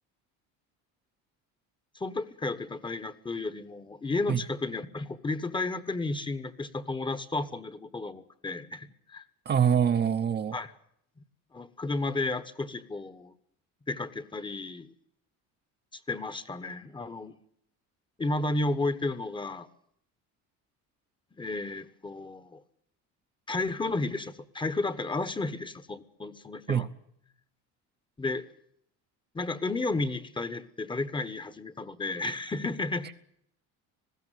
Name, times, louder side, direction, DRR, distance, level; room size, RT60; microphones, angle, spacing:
voice 1, 1.9-9.3 10.5-10.7 11.5-13.3 13.9-14.9 16.1-17.3 18.2-19.7 21.4-22.6 23.5-26.9 28.2-28.5 29.3-33.1, left 2 dB, 15° left, 1.1 m, -32 dB
voice 2, 9.5-10.6 26.7-26.9, right 8 dB, 30° right, 0.9 m, -24 dB
20.5 x 16.0 x 9.2 m
cardioid pair, 150°, 34 cm